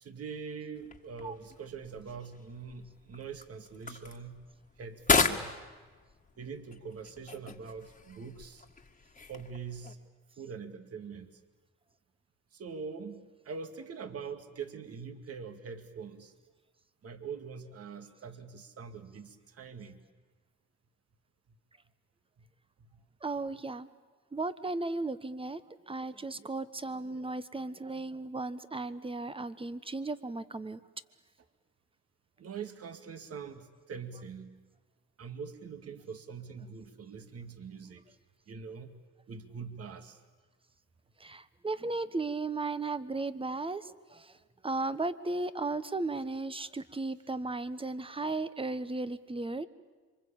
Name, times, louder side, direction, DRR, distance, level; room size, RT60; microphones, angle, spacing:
voice 1, 0.0-4.4 4.8-5.6 6.4-8.7 9.3-10.0 10.4-11.3 12.5-16.3 17.0-20.0 22.4-22.5 22.9-23.0 32.4-34.6 35.2-38.1 38.5-39.0 39.3-40.2, right 5 dB, 50° right, 9 dB, 2.3 m, -43 dB
sound 1, 0.7-9.9, left 4 dB, 25° left, 1.9 m, -36 dB
voice 2, 23.2-23.9 24.3-30.8 41.2-44.3 44.6-49.7, right 3 dB, 20° right, 14 dB, 1.2 m, -35 dB
27.0 x 24.0 x 8.8 m, 1.4 s
cardioid pair, 90°, 30 cm